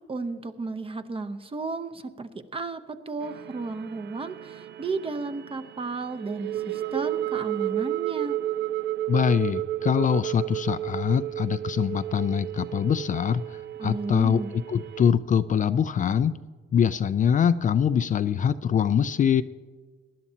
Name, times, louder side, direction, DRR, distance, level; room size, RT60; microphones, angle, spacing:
voice 1, 0.1-8.4 13.8-14.5, right 3 dB, 25° right, 10 dB, 0.8 m, -33 dB
sound 1, 3.2-15.1, right 13 dB, 65° right, 0.4 m, -32 dB
voice 2, 9.1-16.4 16.7-19.4, left 8 dB, 40° left, 13 dB, 0.4 m, -24 dB
19.0 x 11.0 x 2.8 m, 1.4 s
cardioid pair, 90°, 20 cm